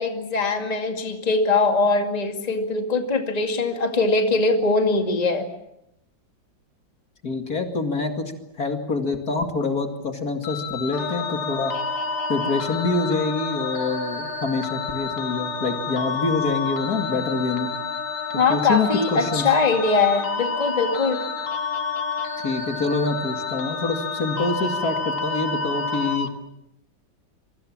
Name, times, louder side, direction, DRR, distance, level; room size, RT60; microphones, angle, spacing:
voice 1, 0.0-5.5 18.3-21.2, left 3 dB, 20° left, 4 dB, 2.2 m, -22 dB
voice 2, 7.2-8.3 8.6-11.7 12.3-17.7 18.5-19.4 22.4-26.3, left 3 dB, 50° left, 5 dB, 2.7 m, -26 dB
sound 1, 10.4-26.3, left 6 dB, 80° left, 2.2 m, -31 dB
Wind instrument woodwind instrument, 10.9-26.2, left 2 dB, 85° right, 5.1 m, -33 dB
27.0 x 23.5 x 7.3 m, 0.81 s
omnidirectional pair, 2.1 m